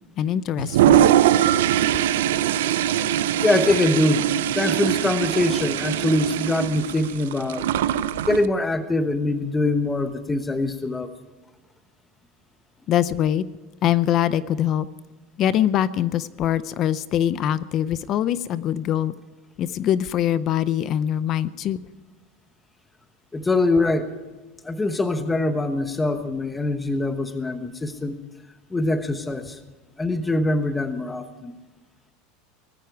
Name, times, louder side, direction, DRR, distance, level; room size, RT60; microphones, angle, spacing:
voice 1, 0.2-1.1 12.9-13.4 13.8-14.9 15.4-19.1 19.6-21.8, left 10 dB, 40° left, 16 dB, 0.6 m, -23 dB
Toilet flush, 0.6-8.5, right 11 dB, 90° right, 0.6 m, -21 dB
voice 2, 3.4-4.3 4.5-7.7 8.2-11.1 23.3-24.1 24.6-28.2 28.7-29.6 30.0-31.5, left 2 dB, 10° left, 9 dB, 1.1 m, -23 dB
19.5 x 14.5 x 4.7 m, 1.2 s
supercardioid pair, 140°, 0 cm